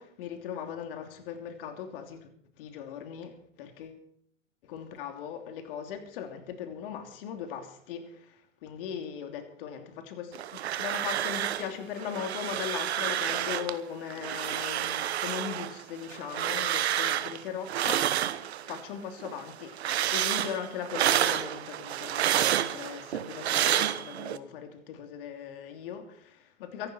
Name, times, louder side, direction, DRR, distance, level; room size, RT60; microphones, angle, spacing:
voice 1, 0.0-2.3 2.6-4.0 4.6-18.1 18.6-26.9, left 8 dB, 45° left, 3.0 m, -39 dB
sound 1, 10.3-11.7 12.0-13.8 14.1-18.8 19.2-24.4, right 11 dB, 55° right, 1.1 m, -29 dB
23.5 x 11.5 x 4.4 m
figure-of-eight pair, 115°, 40 cm